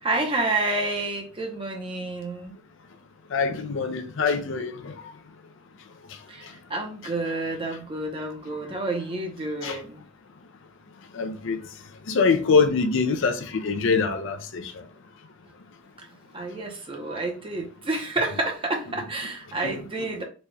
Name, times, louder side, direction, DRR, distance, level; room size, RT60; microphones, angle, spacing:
voice 1, 0.0-2.5 6.3-10.0 16.0-16.1 16.3-20.2, right 2 dB, 25° right, 0.7 m, -29 dB
voice 2, 3.3-4.9 9.6-9.8 11.2-11.6 12.1-14.6 17.1-17.2 19.6-19.7 20.0-20.1, left 5 dB, 60° left, 0.5 m, -24 dB
4.1 x 2.3 x 3.2 m
head